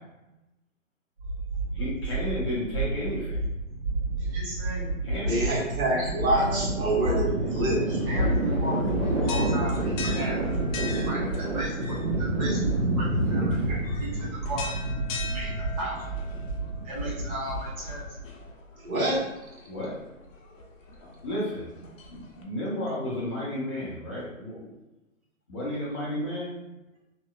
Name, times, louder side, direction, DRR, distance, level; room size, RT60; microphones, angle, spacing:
sound 1, 1.2-18.2, right 2 dB, 65° right, 1.3 m, -28 dB
voice 1, 1.7-3.4 4.0-4.2 5.0-5.5 19.7-20.0 21.2-21.7 22.1-24.7 25.5-26.5, left 1 dB, 20° left, -8 dB, 0.5 m, -32 dB
voice 2, 4.3-4.8 5.9-6.6 7.1-7.2 8.0-10.4 11.1-15.0 15.3-16.1 16.8-18.0, right 1 dB, 25° right, -7 dB, 0.9 m, -36 dB
voice 3, 5.3-8.0 13.6-13.7 18.8-19.2, right 1 dB, 90° right, -5 dB, 1.3 m, -26 dB
sound 2, 8.0-22.4, left 3 dB, 70° left, 0.6 m, -42 dB
2.8 x 2.1 x 2.3 m, 0.97 s
hypercardioid pair, 145°, 41 cm